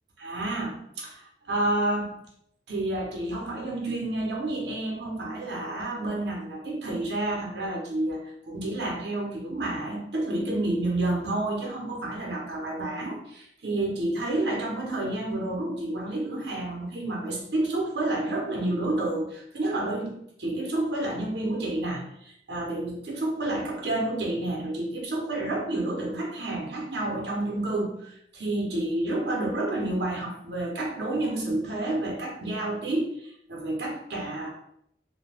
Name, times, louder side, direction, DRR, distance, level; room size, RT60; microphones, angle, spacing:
voice 1, 0.2-2.1 2.7-34.5, right 2 dB, 70° right, -2 dB, 0.7 m, -30 dB
2.5 x 2.1 x 3.3 m, 0.74 s
head